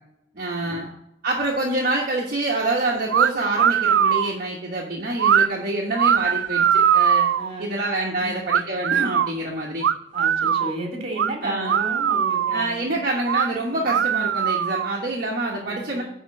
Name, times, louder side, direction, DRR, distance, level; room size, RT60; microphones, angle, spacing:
voice 1, 0.3-0.9 1.2-7.2 7.6-9.8 11.4-11.8 12.5-16.0, right 2 dB, 55° right, -3 dB, 1.2 m, -26 dB
sound 1, 3.1-3.3 3.6-4.3 5.2-5.5 6.0-7.5 8.5-9.3 9.8-10.7 11.2-11.3 11.6-12.7 13.2-13.5 13.9-15.0, right 8 dB, 80° right, 0.3 m, -20 dB
voice 2, 7.4-7.7 8.1-8.3 10.1-12.9 13.7-13.9 15.6-16.0, right 1 dB, 35° right, 1 dB, 2.3 m, -33 dB
10.0 x 3.7 x 5.7 m, 0.81 s
head